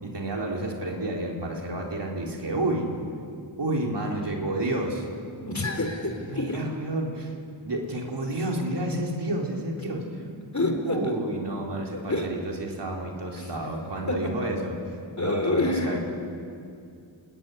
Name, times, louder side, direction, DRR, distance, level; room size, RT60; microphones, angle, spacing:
voice 1, 0.0-2.9 3.6-5.1 6.3-7.3 7.6-10.1 10.8-14.8 15.2-16.0, right 1 dB, 65° right, 0 dB, 4.2 m, -30 dB
voice 2, 5.3-6.6 10.5-11.0 11.9-12.3 13.4-13.5 14.1-14.3 15.2-16.0, left 2 dB, 35° left, 4 dB, 4.2 m, -27 dB
28.0 x 17.0 x 9.9 m, 2.5 s
wide cardioid pair, 75°, 46 cm